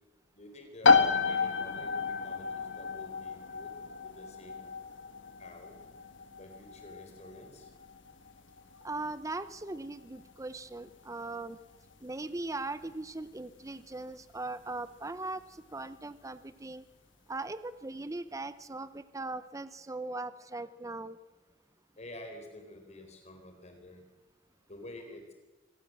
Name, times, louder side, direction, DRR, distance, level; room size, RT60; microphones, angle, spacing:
voice 1, 0.3-3.7 4.0-4.7 5.4-5.8 6.4-7.7 22.0-24.0 24.7-25.3, left 1 dB, 40° left, 4 dB, 4.0 m, -49 dB
sound 1, 0.8-15.3, left 4 dB, 80° left, 1.4 m, -32 dB
voice 2, 8.8-11.6 12.0-15.4 15.7-16.8 17.3-21.2, right 2 dB, 15° right, 13 dB, 0.7 m, -39 dB
25.5 x 18.0 x 7.6 m, 1.2 s
head